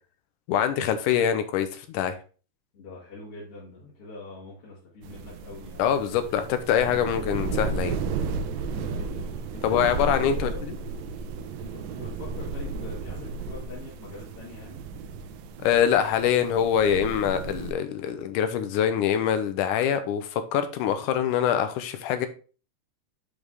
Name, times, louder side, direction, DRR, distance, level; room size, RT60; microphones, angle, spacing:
voice 1, 0.5-2.2 5.8-8.0 9.6-10.8 15.6-22.3, left 9 dB, 80° left, 2.2 m, -24 dB
voice 2, 2.7-6.1 8.7-10.6 11.6-14.8, left 3 dB, 45° left, 2.8 m, -44 dB
sound 1, 5.0-17.7, right 4 dB, 80° right, 1.7 m, -34 dB
6.5 x 5.1 x 3.7 m
omnidirectional pair, 3.8 m